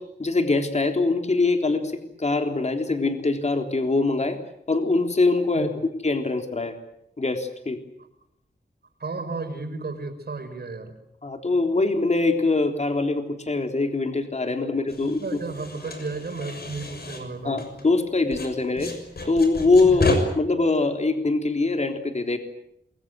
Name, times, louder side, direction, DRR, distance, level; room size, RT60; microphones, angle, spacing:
voice 1, 0.0-1.9 2.2-4.4 4.7-5.7 6.0-6.7 7.2-7.8 11.2-15.2 17.4-18.9 19.3-20.1 20.4-22.4, left 3 dB, 40° left, 5 dB, 3.6 m, -23 dB
voice 2, 9.0-11.0 15.0-17.6 19.9-20.2, right 3 dB, 65° right, 6 dB, 5.6 m, -33 dB
sound 1, 14.9-18.0 18.3-20.2, left 3 dB, 60° left, 6.6 m, -31 dB
28.0 x 22.5 x 8.0 m, 0.76 s
wide cardioid pair, 110°, 18 cm